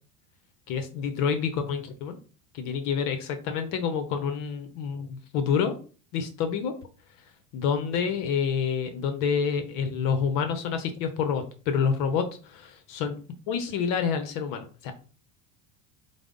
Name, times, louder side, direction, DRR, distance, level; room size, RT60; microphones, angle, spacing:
voice 1, 0.7-2.2 2.5-5.8 6.1-6.7 7.5-13.2 13.5-14.9, left 6 dB, 55° left, 8 dB, 0.7 m, -28 dB
4.8 x 2.0 x 3.6 m, 0.38 s
supercardioid pair, 115°, 39 cm